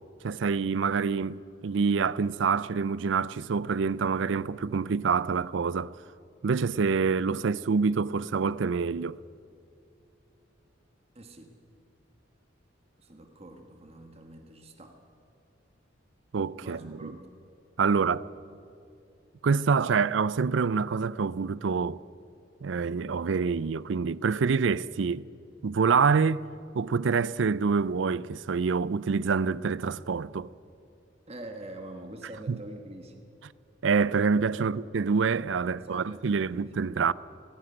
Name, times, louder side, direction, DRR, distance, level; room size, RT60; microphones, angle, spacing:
voice 1, 0.2-5.9 6.4-9.2 16.3-17.1 17.8-18.3 19.4-22.0 22.6-25.3 25.6-26.5 26.7-30.5 32.5-32.6 33.8-37.1, right 5 dB, 70° right, 0.4 m, -26 dB
voice 2, 11.1-11.5 13.0-15.0 16.6-17.2 17.9-18.2 31.3-33.1 34.6-34.8 35.7-36.8, right 1 dB, 30° right, 1.4 m, -45 dB
17.5 x 16.0 x 9.7 m
head